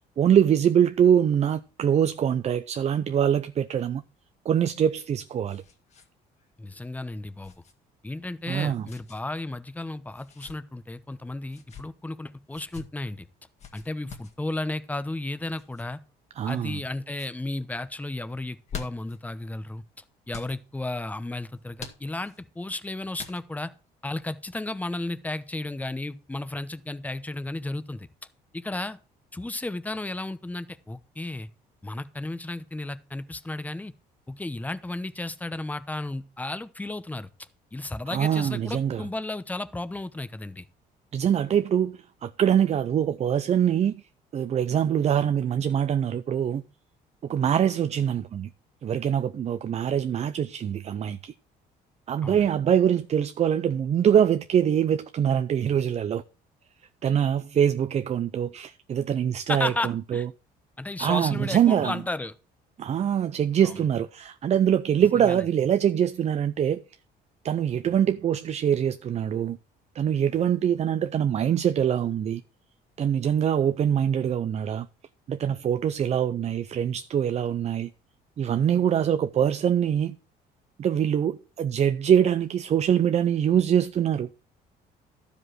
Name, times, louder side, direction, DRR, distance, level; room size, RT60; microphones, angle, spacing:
voice 1, 0.2-4.0 4.5-5.6 8.5-8.9 16.4-16.8 38.1-39.0 41.1-44.0 44.3-46.6 47.2-48.5 48.8-51.3 52.1-56.2 57.0-60.3 61.0-62.0 62.8-66.8 67.4-69.6 69.9-72.4 73.0-74.9 75.3-77.9 78.4-80.2 80.8-84.3, right 9 dB, 40° right, 0.5 m, -24 dB
sound 1, 4.7-6.1 6.4-6.5 7.4-7.7 8.8-9.2 10.1-10.6 11.5-11.9 12.5-12.9 13.6-14.4 15.5-15.8 16.5-16.9 17.1-17.3 18.4-19.2 20.3-20.6 21.8-22.4 23.2-23.7, left 6 dB, 40° left, 2.0 m, -43 dB
voice 2, 6.6-7.5 8.0-13.3 13.7-16.0 16.4-19.8 20.3-23.7 24.0-28.1 28.5-29.0 29.3-31.5 31.8-33.9 34.3-37.3 37.7-40.7 52.2-52.5 59.5-60.3 60.8-62.3 63.6-63.7 65.2-65.4, left 2 dB, 10° left, 0.8 m, -33 dB
12.0 x 5.2 x 6.2 m
cardioid pair, 110°, 17 cm